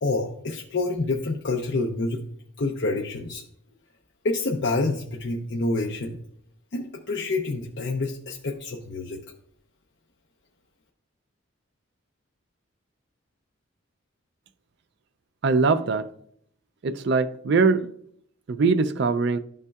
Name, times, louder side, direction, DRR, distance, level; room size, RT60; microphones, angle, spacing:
voice 1, 0.0-2.2 2.6-3.4 4.2-6.2 6.7-9.2, left 2 dB, 55° left, 0.6 m, -27 dB
voice 2, 15.4-16.0 16.8-17.9 18.5-19.4, right 4 dB, 55° right, 0.4 m, -22 dB
12.5 x 5.4 x 2.3 m
head